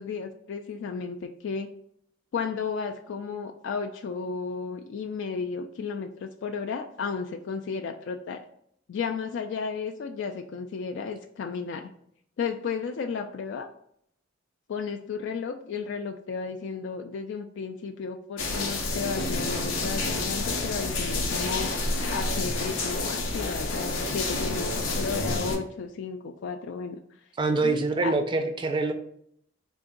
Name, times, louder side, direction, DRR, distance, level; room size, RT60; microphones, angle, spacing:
voice 1, 0.0-1.7 2.3-8.4 8.9-11.9 12.4-13.7 14.7-21.7 22.1-27.0 27.6-28.2, left 5 dB, 65° left, 4 dB, 0.3 m, -33 dB
sound 1, 18.4-25.6, left 2 dB, 90° left, 0.7 m, -29 dB
voice 2, 27.4-28.9, right 3 dB, 25° right, 6 dB, 0.4 m, -25 dB
3.8 x 2.5 x 3.7 m, 0.70 s
head